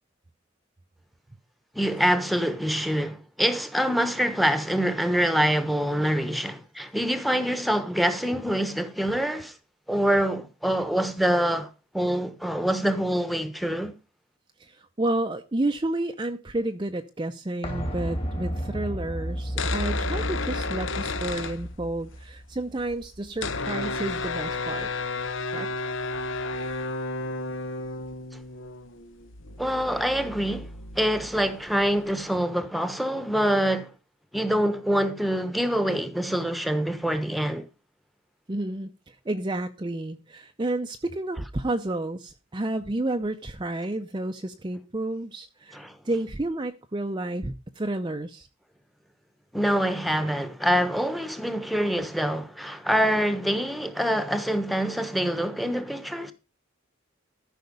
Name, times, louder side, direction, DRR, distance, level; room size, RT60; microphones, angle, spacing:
voice 1, 1.7-9.5 9.9-11.7 11.9-13.9 29.6-30.7 30.9-33.9 34.3-37.7 45.7-46.0 49.5-56.3, equal, ahead, 1.1 m, -25 dB
voice 2, 14.6-24.9 25.5-25.7 38.5-48.5, right 2 dB, 25° right, 0.6 m, -31 dB
sound 1, 17.6-23.3 23.6-23.7, equal, 30° left, 2.1 m, -33 dB
sound 2, 19.4-22.2 22.4-22.5 22.7-32.1, left 3 dB, 65° left, 0.9 m, -33 dB
13.5 x 5.8 x 5.2 m
head